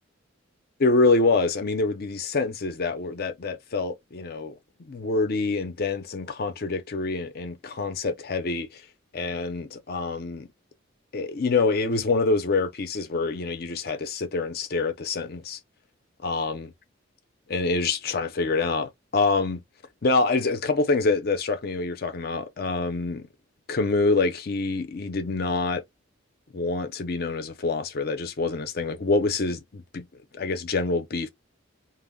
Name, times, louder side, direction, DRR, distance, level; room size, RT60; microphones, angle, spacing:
voice 1, 0.8-4.6 4.8-8.8 9.1-10.5 11.1-15.6 16.2-16.7 17.5-19.6 20.0-23.3 23.7-25.8 26.5-30.1 30.3-31.3, left 3 dB, 50° left, 0.5 m, -26 dB
2.2 x 2.0 x 3.6 m
head